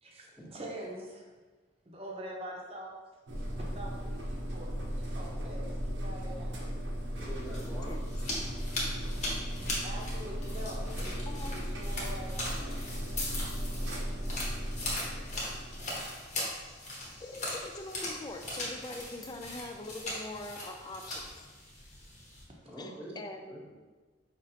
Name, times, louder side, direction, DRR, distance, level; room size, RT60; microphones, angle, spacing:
voice 1, 0.0-1.3 1.8-2.9 3.7-6.6 9.8-11.2 11.5-12.7, right 1 dB, 30° right, -1 dB, 0.7 m, -44 dB
sound 1, 3.3-20.0, equal, 75° right, 0.8 m, -37 dB
sound 2, 7.2-22.4, left 1 dB, 40° left, 1.0 m, -40 dB
voice 2, 7.3-7.9 22.7-23.2 23.5-23.7, equal, 5° left, -7 dB, 1.1 m, -44 dB
voice 3, 11.3-11.7 17.2-21.5 22.8-23.6, left 2 dB, 20° left, 5 dB, 0.3 m, -43 dB
5.3 x 3.0 x 2.8 m, 1.3 s
head